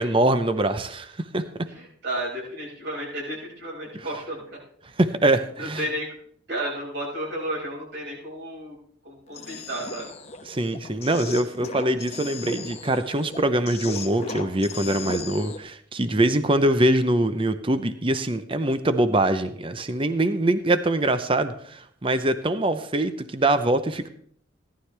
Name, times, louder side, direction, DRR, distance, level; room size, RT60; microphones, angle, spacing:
voice 1, 0.0-1.4 3.9-4.0 5.0-5.9 6.5-6.6 10.4-24.1, right 1 dB, 25° right, 10 dB, 0.7 m, -23 dB
voice 2, 1.8-4.6 5.6-6.1 6.5-8.8 9.0-10.1, right 1 dB, 60° right, -3 dB, 6.1 m, -32 dB
sound 1, 9.3-15.6, left 4 dB, 30° left, 1.0 m, -37 dB
17.5 x 11.5 x 3.4 m, 0.63 s
head